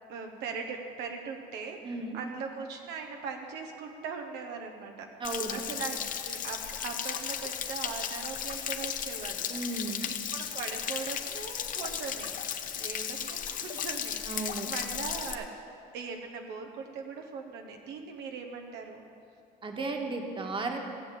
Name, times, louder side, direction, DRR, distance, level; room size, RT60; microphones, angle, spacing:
voice 1, 0.1-5.1 5.5-15.5 15.9-19.0, right 5 dB, 85° right, 3 dB, 1.3 m, -40 dB
voice 2, 1.8-2.2 5.2-5.6 9.5-10.0 14.2-14.7 19.6-20.8, right 3 dB, 30° right, 2 dB, 1.5 m, -34 dB
Stream / Splash splatter / Trickle dribble, 5.2-15.3, left 9 dB, 55° left, 0.8 m, -35 dB
15.5 x 7.4 x 7.0 m, 2.4 s
cardioid pair, 110°, 17 cm